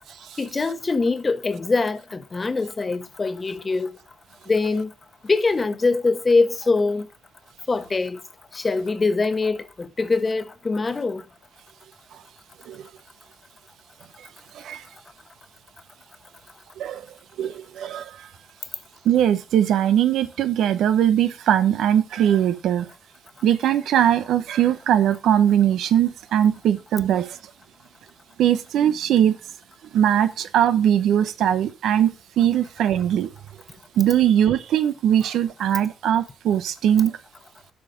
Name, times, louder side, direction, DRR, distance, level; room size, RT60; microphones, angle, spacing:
voice 1, 0.4-3.9 4.5-4.9 5.2-7.1 7.7-8.2 8.5-11.2, left 3 dB, 35° left, 1.1 m, -23 dB
voice 2, 17.4-18.3 19.0-22.9 23.4-27.4 28.4-29.3 29.9-33.3 34.0-37.2, right 10 dB, 80° right, 0.7 m, -20 dB
8.2 x 5.1 x 6.3 m
supercardioid pair, 55°, 0 cm